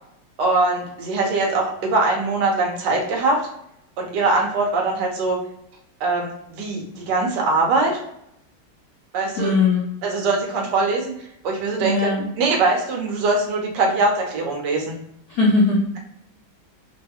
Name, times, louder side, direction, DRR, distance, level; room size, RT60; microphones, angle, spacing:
voice 1, 0.4-3.4 4.0-5.4 6.0-8.0 9.1-9.5 10.0-11.1 11.4-12.1 12.4-14.9, right 3 dB, 65° right, 0 dB, 1.3 m, -22 dB
voice 2, 9.4-9.8 11.8-12.2 15.3-16.0, left 3 dB, 65° left, -5 dB, 1.1 m, -19 dB
3.8 x 2.2 x 2.8 m, 0.75 s
omnidirectional pair, 2.2 m